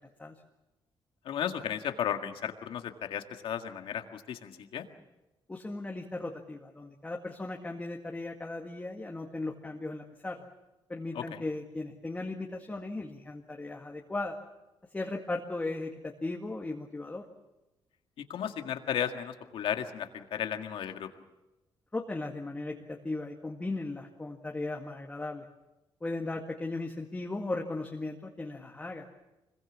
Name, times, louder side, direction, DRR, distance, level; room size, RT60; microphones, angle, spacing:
voice 1, 1.3-4.9 11.2-11.4 18.2-21.1, left 9 dB, 85° left, 6 dB, 1.9 m, -34 dB
voice 2, 5.5-10.5 10.9-14.4 14.9-17.2 21.9-25.5 26.0-29.1, left 2 dB, 15° left, 1 dB, 1.9 m, -37 dB
25.5 x 22.0 x 7.3 m, 1.0 s
cardioid pair, 110°, 9 cm